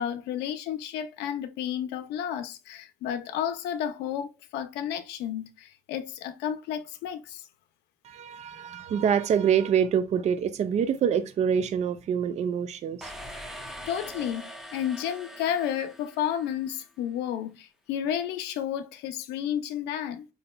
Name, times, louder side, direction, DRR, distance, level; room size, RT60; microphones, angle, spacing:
voice 1, 0.0-7.4 13.9-20.3, left 9 dB, 85° left, 0.6 m, -32 dB
voice 2, 8.0-13.1, right 8 dB, 40° right, 0.4 m, -26 dB
sound 1, 13.0-16.8, equal, ahead, 0.6 m, -42 dB
3.9 x 2.8 x 2.2 m
cardioid pair, 110°, 17 cm